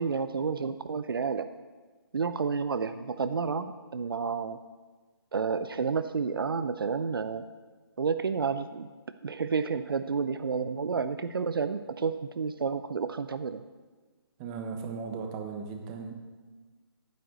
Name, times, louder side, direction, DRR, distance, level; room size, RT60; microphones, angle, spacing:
voice 1, 0.0-1.5 2.1-4.6 5.3-7.4 8.0-8.9 9.2-13.6, right 5 dB, 60° right, 11 dB, 0.6 m, -30 dB
voice 2, 14.4-16.2, right 5 dB, 15° right, 4 dB, 0.9 m, -37 dB
9.2 x 7.6 x 8.1 m, 1.3 s
figure-of-eight pair, 155°, 13 cm